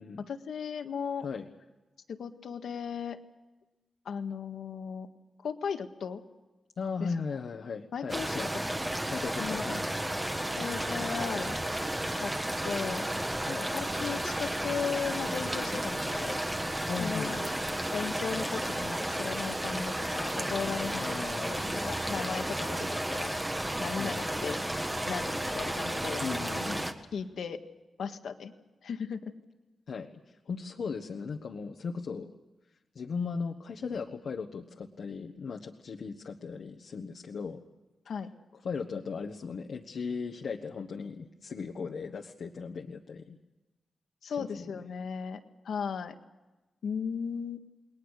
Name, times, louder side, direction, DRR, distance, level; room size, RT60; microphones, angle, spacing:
voice 1, 0.2-1.3 2.1-3.2 4.1-5.1 5.4-6.2 7.0-7.4 7.9-8.8 9.4-9.7 10.6-11.6 12.2-12.3 12.6-13.1 13.7-16.4 17.0-17.4 17.9-21.2 21.8-23.4 23.8-24.6 25.1-26.2 27.1-27.6 28.0-28.5 28.8-29.3 38.1-38.3 44.2-45.4 45.7-46.1 46.8-47.6, left 6 dB, 80° left, 7 dB, 1.7 m, -36 dB
voice 2, 6.8-8.5 9.1-9.9 13.5-13.7 16.9-17.8 20.9-22.0 24.0-24.4 26.2-26.9 29.9-32.3 32.9-37.6 38.6-43.4 44.3-44.8, left 5 dB, 60° left, 2 dB, 1.4 m, -37 dB
sound 1, 8.1-26.9, right 1 dB, 10° right, 1.4 m, -33 dB
29.5 x 21.5 x 6.6 m, 1.1 s
wide cardioid pair, 155°, 0 cm